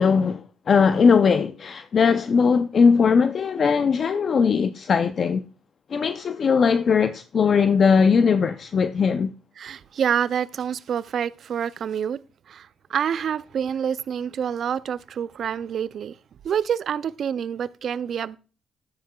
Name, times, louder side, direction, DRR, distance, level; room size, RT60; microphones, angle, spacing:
voice 1, 0.0-5.4 5.9-9.3, left 5 dB, 50° left, 0.5 m, -19 dB
voice 2, 9.6-12.2 12.5-16.1 16.4-18.4, right 8 dB, 60° right, 0.4 m, -27 dB
13.0 x 9.5 x 2.3 m
cardioid pair, 90°, 0 cm